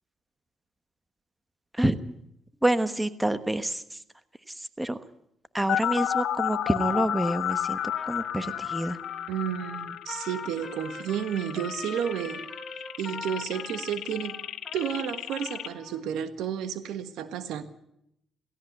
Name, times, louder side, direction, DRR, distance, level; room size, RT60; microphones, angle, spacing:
voice 1, 1.7-2.1 2.6-4.0 4.5-5.0 5.5-7.8 8.1-9.0, right 1 dB, 10° right, 12 dB, 1.1 m, -27 dB
sound 1, 5.7-15.7, left 10 dB, 75° left, 1.2 m, -32 dB
Trumpet, 7.7-16.0, left 3 dB, 20° left, 4.0 m, -42 dB
voice 2, 9.3-12.4 13.0-14.4 14.7-17.6, right 9 dB, 85° right, 11 dB, 1.5 m, -31 dB
17.0 x 16.5 x 9.2 m, 0.77 s
cardioid pair, 90°, 0 cm